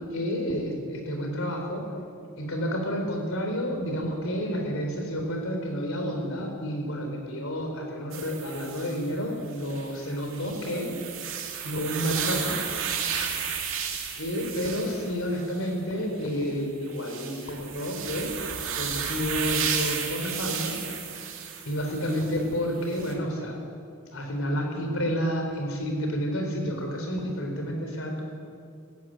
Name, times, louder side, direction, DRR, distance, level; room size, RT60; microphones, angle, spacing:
voice 1, 0.1-1.8 2.4-10.9 11.6-12.5 14.2-18.3 18.8-20.7 21.6-23.6 24.1-28.2, equal, 65° left, 2 dB, 4.4 m, -30 dB
sound 1, 8.1-9.1 9.5-15.7 16.2-16.4 16.9-22.4 22.9-23.1, right 7 dB, 65° right, 2.5 m, -33 dB
18.0 x 15.0 x 9.6 m, 2.4 s
head